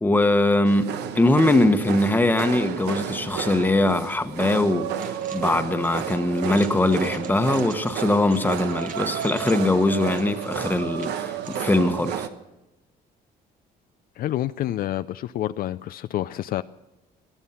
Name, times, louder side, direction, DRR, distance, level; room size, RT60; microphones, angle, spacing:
voice 1, 0.0-12.3, left 2 dB, 10° left, 1.2 m, -22 dB
sound 1, 0.6-12.3, right 9 dB, 80° right, 1.1 m, -32 dB
sound 2, 4.9-11.8, right 6 dB, 50° right, 1.6 m, -45 dB
voice 2, 14.2-16.6, left 13 dB, 60° left, 0.5 m, -28 dB
18.5 x 12.5 x 5.8 m
cardioid pair, 110°, 17 cm